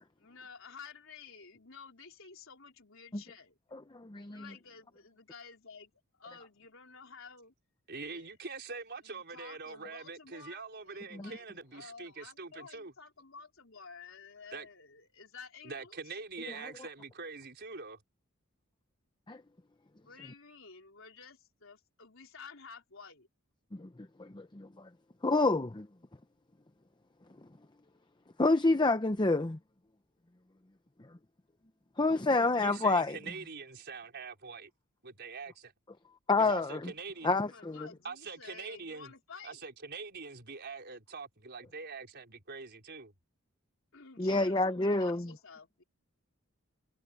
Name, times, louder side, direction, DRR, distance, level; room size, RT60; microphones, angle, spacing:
voice 1, 0.2-3.6 4.3-5.9 6.2-7.5 8.0-8.3 9.0-16.2 20.0-23.3 37.3-39.6 43.9-45.8, left 5 dB, 65° left, 4.6 m, -52 dB
voice 2, 3.7-4.5 11.1-11.3 16.5-16.7 19.3-19.4 23.7-23.9 24.2-24.9 25.2-25.9 28.4-29.6 32.0-33.2 36.3-36.9 37.2-37.9 44.2-45.3, left 3 dB, 20° left, 0.7 m, -28 dB
voice 3, 7.9-12.9 14.5-14.7 15.6-18.0 32.6-34.7 35.0-35.7 36.4-37.3 38.0-39.1 39.4-43.1, right 4 dB, 50° right, 4.7 m, -44 dB
head